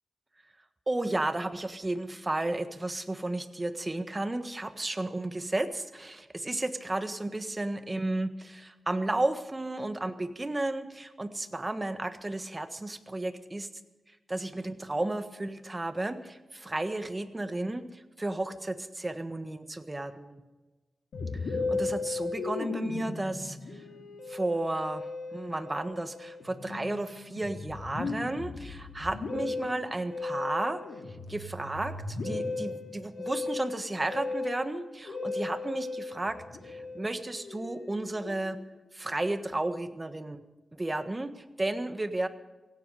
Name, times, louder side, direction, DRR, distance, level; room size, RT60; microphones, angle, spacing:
voice 1, 0.9-13.7 14.3-20.4 21.4-23.8 24.3-30.8 31.3-36.4 36.6-38.6 38.9-40.4 40.7-42.3, right 2 dB, 20° right, 9 dB, 1.4 m, -33 dB
Musical instrument, 21.1-38.7, left 3 dB, 80° left, 3.3 m, -36 dB
17.5 x 16.0 x 4.9 m, 1.2 s
wide cardioid pair, 95°, 0 cm